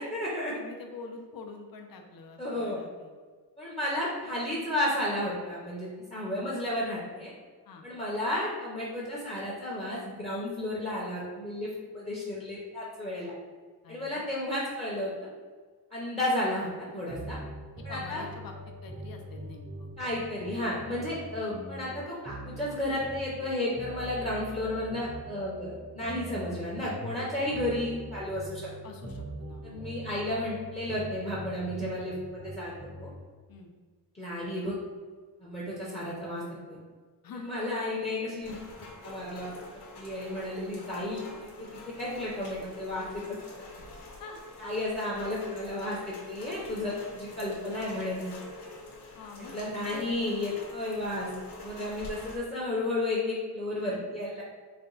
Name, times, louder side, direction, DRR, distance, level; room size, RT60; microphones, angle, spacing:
voice 1, 0.0-0.5 2.4-2.8 3.6-7.3 7.8-13.3 13.9-15.3 15.9-17.4 17.8-18.2 20.0-28.7 29.6-32.7 33.0-33.1 34.1-34.8 35.4-36.4 36.7-36.8 37.3-39.5 39.9-41.2 41.6-41.7 42.0-43.2 43.6-43.7 44.6-48.3 49.4-51.3 51.6-54.4, left 1 dB, 15° left, -6 dB, 0.7 m, -33 dB
voice 2, 0.5-3.1 7.7-7.8 13.8-14.3 17.8-18.5 18.8-19.9 21.0-21.2 28.8-29.8 33.5-33.7 37.2-37.5 43.8-43.9 44.2-44.7 49.1-49.5 49.9-50.1 51.8-52.0, left 4 dB, 60° left, 3 dB, 0.6 m, -46 dB
sound 1, 17.1-33.2, right 1 dB, 20° right, 0.5 m, -43 dB
Rain, 38.4-52.4, left 2 dB, 85° left, 1.0 m, -46 dB
4.3 x 2.2 x 3.9 m, 1.5 s
wide cardioid pair, 130°, 39 cm